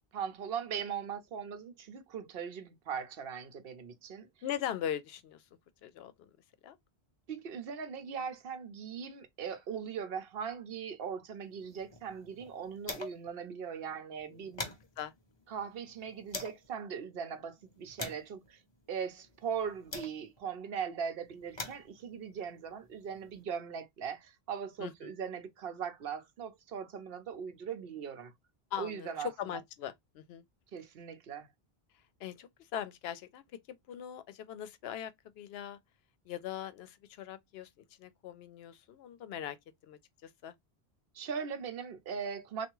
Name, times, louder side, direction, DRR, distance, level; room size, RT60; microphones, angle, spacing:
voice 1, 0.1-4.3 7.3-14.7 15.5-18.6 18.9-28.3 28.8-29.3 30.7-31.5 41.1-42.7, right 7 dB, 70° right, 0.8 m, -39 dB
voice 2, 4.4-5.4 5.8-6.3 6.6-6.8 14.3-14.5 15.0-15.1 24.8-25.1 28.7-30.4 32.2-35.8 36.2-37.7 38.0-39.6 39.8-40.5, left 10 dB, 75° left, 0.8 m, -41 dB
sound 1, 11.6-13.4 13.7-13.8 14.1-16.7 17.3-20.5 21.2-23.4, left 2 dB, 30° left, 0.7 m, -46 dB
3.4 x 2.4 x 3.0 m
omnidirectional pair, 1.1 m